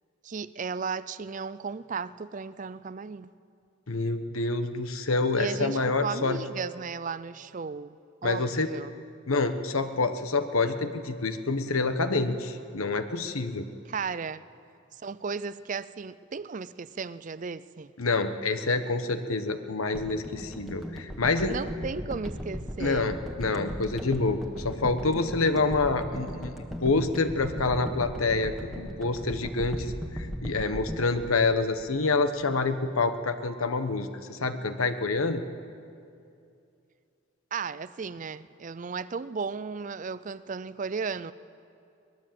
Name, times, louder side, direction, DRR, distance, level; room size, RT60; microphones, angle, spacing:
voice 1, 0.2-3.3 5.3-8.0 8.2-9.0 13.9-14.4 14.9-17.9 21.5-23.1 37.5-41.3, right 5 dB, 35° right, 0.4 m, -35 dB
voice 2, 3.9-6.4 8.2-8.7 9.3-13.7 18.0-21.6 22.8-26.5 26.8-35.4, left 3 dB, 85° left, 1.3 m, -27 dB
sound 1, 19.9-32.3 32.6-32.7, equal, ahead, 1.5 m, -37 dB
23.0 x 20.0 x 7.7 m
head